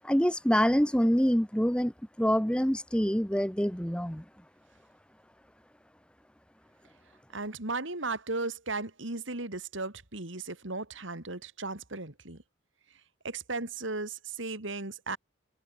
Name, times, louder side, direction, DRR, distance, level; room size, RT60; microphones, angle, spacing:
voice 1, 0.0-1.9 2.2-4.2, equal, 5° left, 1.3 m, -26 dB
voice 2, 7.3-12.4 13.2-15.2, right 3 dB, 70° right, 3.0 m, -36 dB
head